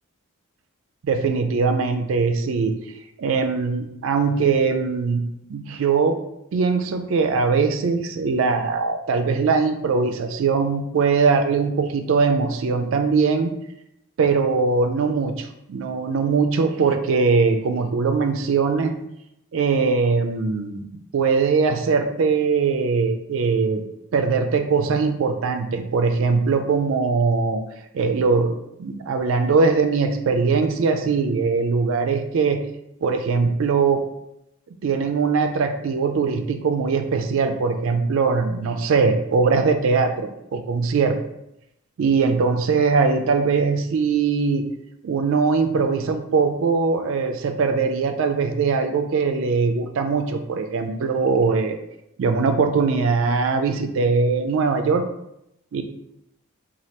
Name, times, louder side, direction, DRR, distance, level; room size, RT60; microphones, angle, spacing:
voice 1, 1.0-2.8 3.2-5.2 5.5-6.2 6.5-13.5 14.2-18.9 19.5-20.9 21.1-23.8 24.1-27.6 27.9-32.6 33.0-34.0 34.8-41.2 42.0-44.6 45.0-51.8 52.2-55.0 55.7-55.8, right 4 dB, 65° right, 6 dB, 0.3 m, -21 dB
3.2 x 2.3 x 2.8 m, 0.82 s
head